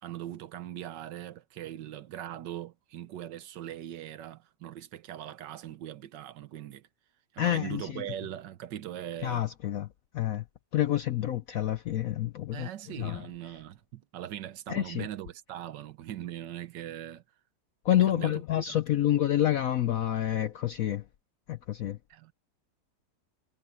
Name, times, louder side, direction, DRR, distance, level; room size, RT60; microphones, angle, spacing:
voice 1, 0.0-6.9 7.3-9.5 12.5-17.2 18.1-18.8 22.1-22.3, right 12 dB, 80° right, 1.5 m, -40 dB
voice 2, 7.4-8.0 9.2-9.9 10.1-10.4 10.7-12.7 13.0-13.3 14.7-15.1 17.8-21.0 21.5-22.0, left 12 dB, 65° left, 0.9 m, -28 dB
omnidirectional pair, 1.9 m